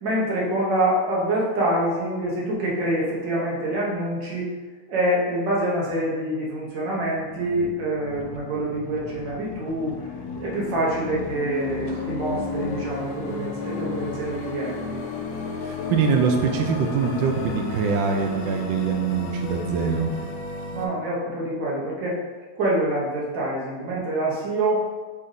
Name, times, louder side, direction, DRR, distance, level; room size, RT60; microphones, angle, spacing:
voice 1, 0.0-4.5 4.9-10.0 10.4-15.0 20.7-22.2 22.6-24.8, right 1 dB, 70° right, -6 dB, 1.7 m, -26 dB
sound 1, 6.8-20.9, left 4 dB, 70° left, 1.0 m, -33 dB
voice 2, 15.7-20.2, right 5 dB, 85° right, 4 dB, 1.3 m, -23 dB
4.1 x 3.3 x 3.8 m, 1.3 s
omnidirectional pair, 2.0 m